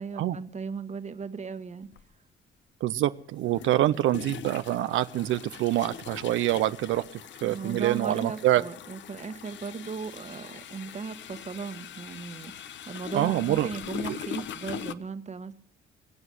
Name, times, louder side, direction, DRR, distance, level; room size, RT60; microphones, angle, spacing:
voice 1, 0.0-1.9 7.4-15.6, right 5 dB, 35° right, 1.3 m, -37 dB
sound 1, 1.9-2.0 3.4-14.9, left 9 dB, 70° left, 1.0 m, -42 dB
voice 2, 2.8-7.0 7.4-8.6 13.1-13.7 14.1-14.2, right 14 dB, 80° right, 0.6 m, -26 dB
21.5 x 7.9 x 7.7 m
cardioid pair, 90°, 20 cm